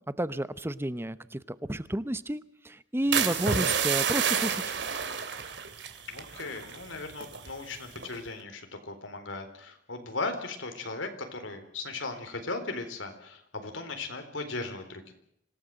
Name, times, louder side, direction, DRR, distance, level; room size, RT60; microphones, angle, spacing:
voice 1, 0.2-4.7, right 1 dB, 15° right, 15 dB, 0.9 m, -31 dB
sound 1, 3.1-7.5 8.0-8.3, right 7 dB, 65° right, 2.8 m, -29 dB
voice 2, 6.1-15.1, left 3 dB, 85° left, 6 dB, 4.1 m, -37 dB
26.0 x 17.0 x 7.8 m, 0.73 s
head